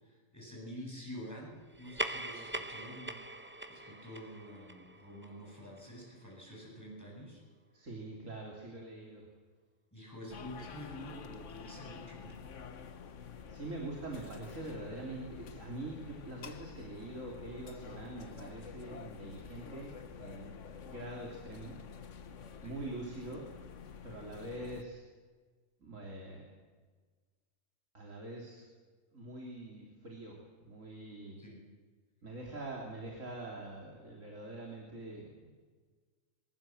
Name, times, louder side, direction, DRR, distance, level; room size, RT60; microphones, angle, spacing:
voice 1, 0.0-7.4 9.9-12.4 22.6-22.8 31.4-31.6, equal, 10° left, -2 dB, 8.0 m, -48 dB
sound 1, 1.7-6.6, right 1 dB, 10° right, 0.9 m, -42 dB
voice 2, 7.7-9.3 13.5-21.8 22.6-23.5 24.0-25.0 25.8-26.4 27.9-28.6 29.1-31.4 32.2-35.3, right 2 dB, 70° right, -1 dB, 3.7 m, -44 dB
sound 2, 10.3-24.8, left 6 dB, 65° left, 1.4 m, -49 dB
23.5 x 22.5 x 7.8 m, 1.5 s
omnidirectional pair, 1.4 m